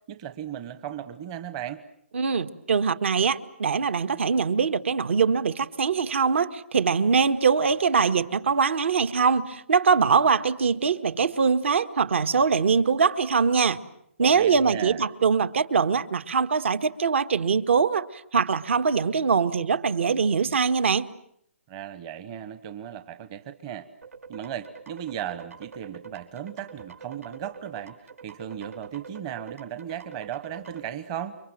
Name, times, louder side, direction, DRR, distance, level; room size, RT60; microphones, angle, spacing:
voice 1, 0.1-1.8 14.2-15.1 21.7-23.9 24.3-31.4, right 10 dB, 25° right, 10 dB, 1.1 m, -36 dB
voice 2, 2.1-13.8 14.2-18.1 18.3-21.1, right 5 dB, 60° right, 12 dB, 1.7 m, -22 dB
sound 1, 24.0-30.9, right 6 dB, 85° right, 5.5 m, -45 dB
29.5 x 24.5 x 7.7 m, 0.71 s
hypercardioid pair, 170°, 8 cm